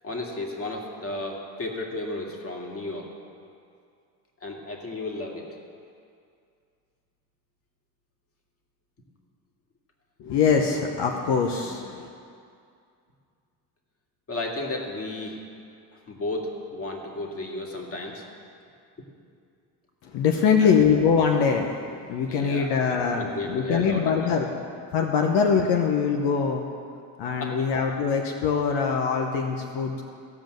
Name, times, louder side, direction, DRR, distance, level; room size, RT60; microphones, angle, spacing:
voice 1, 0.0-3.1 4.4-5.4 14.3-15.4 15.9-18.2 20.6-20.7 22.3-22.9 23.2-24.3 27.4-27.6, left 2 dB, 35° left, 0 dB, 2.2 m, -33 dB
voice 2, 10.2-12.1 20.0-24.5 24.9-26.6 27.2-30.0, left 6 dB, 75° left, 2 dB, 1.0 m, -23 dB
16.0 x 5.3 x 7.7 m, 2.4 s
supercardioid pair, 85°, 41 cm